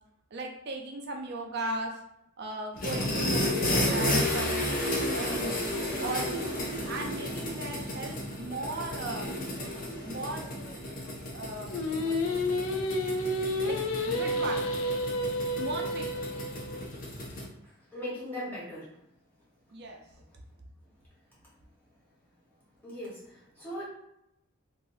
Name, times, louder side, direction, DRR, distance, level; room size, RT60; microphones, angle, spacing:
voice 1, 0.3-2.0 2.4-5.7 6.0-6.5 6.9-9.4 10.0-10.5 11.3-12.6 13.6-14.6 15.6-16.1 19.7-20.0, right 2 dB, 50° right, 2 dB, 0.5 m, -37 dB
sound 1, 2.7-17.5, left 1 dB, 40° left, 0.7 m, -32 dB
Singing, 11.7-16.9, left 1 dB, 65° left, 0.4 m, -30 dB
voice 2, 17.9-18.9 22.8-23.8, equal, 10° left, -8 dB, 1.2 m, -38 dB
3.4 x 2.5 x 2.6 m, 0.84 s
head